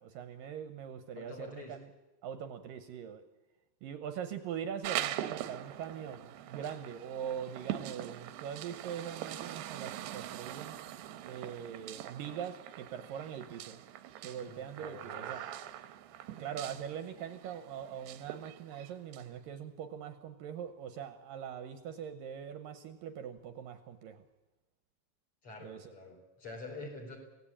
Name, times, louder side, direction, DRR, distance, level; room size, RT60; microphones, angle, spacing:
voice 1, 0.0-1.9 2.2-3.2 3.8-10.8 11.2-13.8 14.2-15.4 16.4-24.3 25.6-25.9 26.8-26.9, right 8 dB, 70° right, 9 dB, 2.4 m, -42 dB
voice 2, 1.2-1.8 14.3-15.6 25.4-27.2, left 3 dB, 35° left, 1 dB, 5.0 m, -47 dB
sound 1, 4.8-19.2, right 12 dB, 90° right, 3.1 m, -43 dB
24.5 x 17.0 x 8.7 m, 1.1 s
omnidirectional pair, 4.6 m